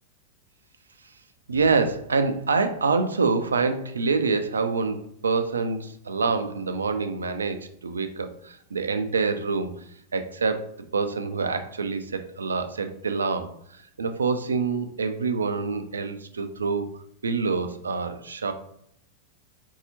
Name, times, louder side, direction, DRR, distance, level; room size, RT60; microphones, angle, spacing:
voice 1, 1.5-9.8 10.1-16.9 17.2-18.5, right 4 dB, 70° right, 9 dB, 0.3 m, -26 dB
3.9 x 2.7 x 2.7 m, 0.70 s
figure-of-eight pair, 90°, 0 cm